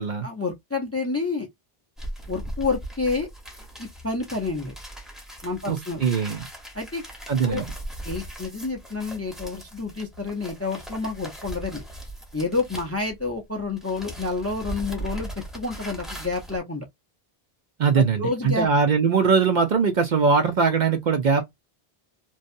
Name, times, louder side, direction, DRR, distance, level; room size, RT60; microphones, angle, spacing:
voice 1, 0.2-1.5 2.3-3.3 3.8-4.7 5.4-6.0 6.7-7.0 7.4-7.6 8.1-11.8 12.3-16.9 18.0-18.7, left 3 dB, 20° left, 0.4 m, -29 dB
sound 1, 2.0-13.4 13.7-16.6, right 1 dB, ahead, 0.9 m, -39 dB
voice 2, 5.7-6.5 7.3-7.7 17.8-21.4, right 5 dB, 55° right, 0.6 m, -21 dB
2.7 x 2.2 x 2.5 m
omnidirectional pair, 1.0 m